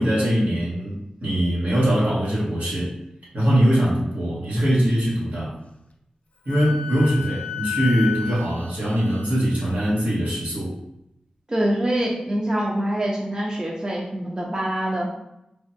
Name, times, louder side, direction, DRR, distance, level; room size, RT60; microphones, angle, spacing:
voice 1, 0.0-2.9 3.3-5.5 6.4-10.7, equal, 80° right, -7 dB, 1.2 m, -22 dB
Wind instrument woodwind instrument, 6.5-9.9, left 8 dB, 55° left, 0.3 m, -32 dB
voice 2, 11.5-15.1, right 1 dB, 30° right, -3 dB, 0.6 m, -25 dB
3.4 x 2.1 x 2.6 m, 0.82 s
wide cardioid pair, 65°, 3 cm